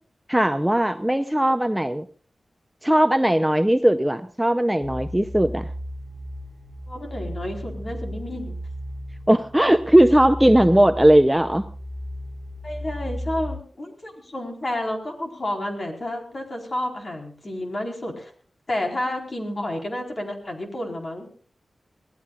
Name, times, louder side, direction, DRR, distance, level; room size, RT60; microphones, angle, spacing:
voice 1, 0.3-2.1 2.8-5.7 9.3-11.6, right 1 dB, 10° right, 9 dB, 0.7 m, -18 dB
sound 1, 4.8-13.5, equal, 10° left, 3.3 m, -35 dB
voice 2, 6.9-8.6 12.6-18.3 18.7-21.3, left 1 dB, 40° left, 2 dB, 4.5 m, -30 dB
24.5 x 17.5 x 2.5 m, 0.43 s
wide cardioid pair, 70°, 0 cm